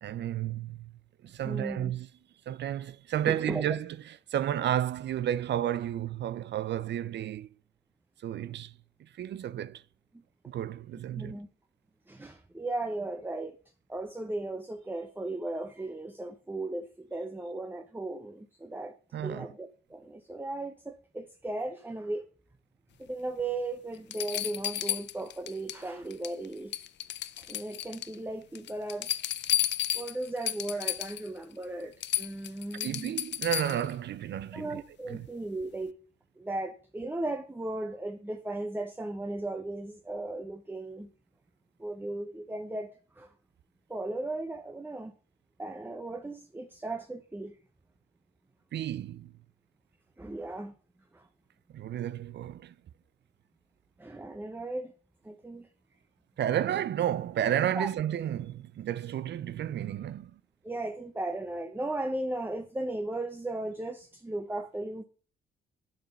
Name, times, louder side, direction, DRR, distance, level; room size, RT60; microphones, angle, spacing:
voice 1, 0.0-0.9 1.2-2.1 2.5-7.5 8.2-9.8 10.5-11.3 19.1-19.5 32.8-35.3 48.7-49.3 51.7-52.7 56.4-60.4, right 11 dB, 60° right, 0.7 m, -32 dB
voice 2, 1.4-1.9 3.3-3.6 11.2-11.5 12.1-13.6 13.9-22.3 23.0-26.7 27.4-29.1 29.9-33.2 34.5-35.9 36.4-41.1 41.8-42.9 43.2-43.3 43.9-45.1 45.6-47.6 50.2-50.7 51.1-51.3 54.0-54.9 55.2-55.7 57.7-57.9 60.6-65.0, right 2 dB, 10° right, 1.0 m, -36 dB
sound 1, 23.4-23.5 24.1-25.8 26.1-26.5 26.7-28.2 28.6-31.3 31.6-31.7 32.0-33.9 35.6-35.7, left 11 dB, 60° left, 0.6 m, -32 dB
9.4 x 7.4 x 5.4 m
cardioid pair, 90°, 20 cm